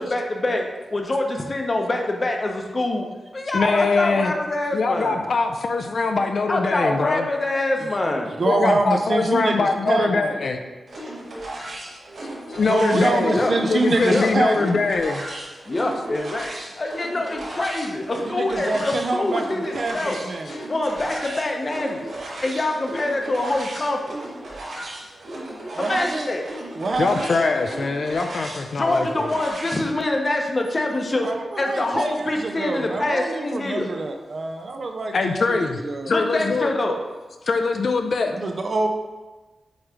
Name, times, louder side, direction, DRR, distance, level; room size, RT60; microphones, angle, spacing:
voice 1, 0.0-3.1 3.3-5.2 6.1-8.3 12.9-13.5 14.1-14.3 15.7-16.5 16.8-20.2 20.7-22.0 22.4-24.0 25.8-26.4 28.7-31.3 31.6-33.9 36.1-37.0, left 2 dB, 30° left, 2 dB, 0.8 m, -25 dB
voice 2, 3.5-4.3 4.7-7.3 8.5-10.6 12.5-13.4 13.7-15.2 27.0-29.3 35.1-35.8 36.1-36.7 37.5-38.4, left 4 dB, 55° left, 5 dB, 0.5 m, -22 dB
voice 3, 8.3-10.3 12.7-14.8 18.2-20.5 25.8-26.3 26.7-27.3 31.2-36.1 38.3-38.9, right 2 dB, 45° right, 4 dB, 0.6 m, -25 dB
sound 1, 10.9-29.9, right 1 dB, 65° right, 2.2 m, -35 dB
8.0 x 3.1 x 4.9 m, 1.2 s
wide cardioid pair, 150°, 0 cm